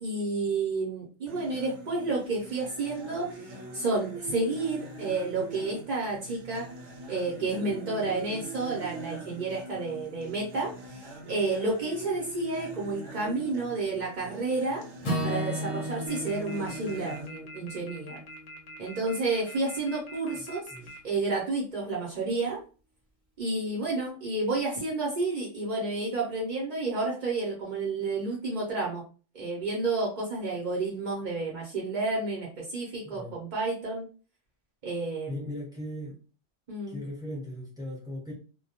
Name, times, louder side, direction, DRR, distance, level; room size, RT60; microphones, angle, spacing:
voice 1, 0.0-6.7 7.1-14.8 15.2-18.2 18.8-20.6 21.0-22.6 23.4-29.0 29.3-34.0 34.8-35.5 36.7-37.0, right 3 dB, 50° right, -3 dB, 0.6 m, -30 dB
sound 1, 1.3-17.3, right 3 dB, 70° right, 0.9 m, -43 dB
Acoustic guitar / Strum, 15.0-19.3, equal, 35° left, 0.7 m, -35 dB
sound 2, 16.1-21.0, left 1 dB, 70° left, 0.8 m, -45 dB
voice 2, 33.0-33.4 35.3-36.2 36.9-38.3, left 1 dB, 5° right, -4 dB, 0.7 m, -38 dB
2.2 x 2.1 x 2.7 m, 0.37 s
omnidirectional pair, 1.3 m